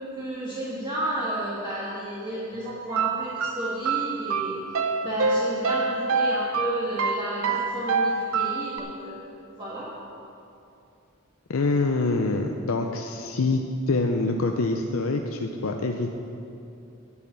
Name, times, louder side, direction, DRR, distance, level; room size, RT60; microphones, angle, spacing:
voice 1, 0.1-9.3 9.6-9.9, right 1 dB, 20° right, -7 dB, 1.7 m, -32 dB
sound 1, 2.9-8.8, right 4 dB, 75° right, 0.6 m, -26 dB
voice 2, 11.5-16.1, left 3 dB, 70° left, 4 dB, 0.6 m, -25 dB
10.5 x 5.6 x 8.8 m, 2.7 s
head